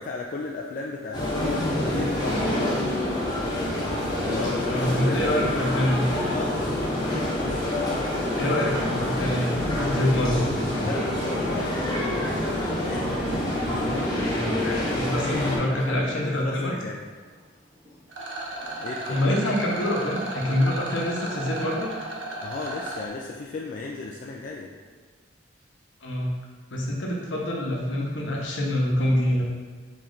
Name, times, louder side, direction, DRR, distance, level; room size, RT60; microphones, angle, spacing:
voice 1, 0.0-2.5 4.3-5.7 6.2-6.6 7.1-7.3 10.8-12.4 12.8-13.2 14.3-17.0 18.8-19.4 22.4-24.7, left 3 dB, 45° left, -1 dB, 0.3 m, -35 dB
sound 1, 1.1-15.6, left 1 dB, 20° left, 0.8 m, -26 dB
voice 2, 4.7-6.1 8.4-10.5 13.6-13.9 15.0-16.8 19.0-21.9 26.0-26.3 26.7-29.4, left 1 dB, 70° left, -2 dB, 0.9 m, -26 dB
Thunder, 9.6-18.0 18.3-22.6 22.8-23.0 24.2-24.9, left 1 dB, 30° right, 1.2 m, -44 dB
Rattle, 18.1-23.1, right 1 dB, 70° right, 0.8 m, -34 dB
4.3 x 3.2 x 3.9 m, 1.5 s
head